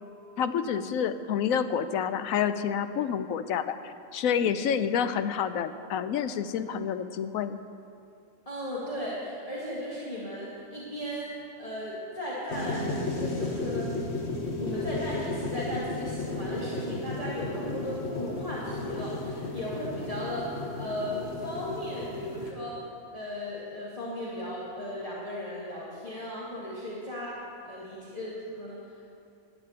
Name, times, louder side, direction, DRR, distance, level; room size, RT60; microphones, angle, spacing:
voice 1, 0.4-7.6, left 8 dB, 75° left, 11 dB, 1.0 m, -28 dB
voice 2, 8.5-14.0 14.6-27.4 27.6-28.8, left 1 dB, 25° left, -8 dB, 2.0 m, -36 dB
sound 1, 12.5-22.5, left 2 dB, 50° left, 1.4 m, -34 dB
12.0 x 7.6 x 8.9 m, 2.5 s
omnidirectional pair, 1.5 m